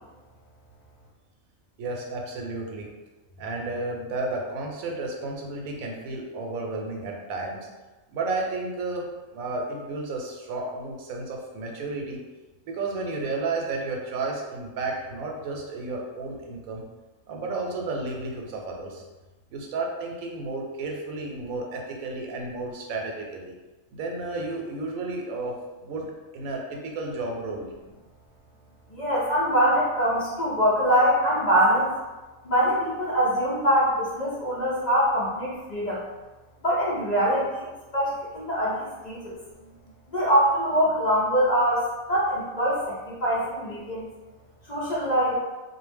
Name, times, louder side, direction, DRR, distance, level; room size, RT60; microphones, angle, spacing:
voice 1, 1.8-2.9 3.4-7.7 8.1-9.1 9.3-12.2 12.7-16.8 17.3-19.0 19.5-23.5 23.9-25.6 25.8-26.1 26.3-27.7, right 3 dB, 90° right, 0 dB, 1.0 m, -32 dB
voice 2, 28.9-31.9 32.4-36.0 36.6-37.7 37.9-39.4 40.1-44.1 44.7-45.4, equal, 50° left, -8 dB, 0.5 m, -23 dB
2.3 x 2.0 x 3.3 m, 1.2 s
omnidirectional pair, 1.4 m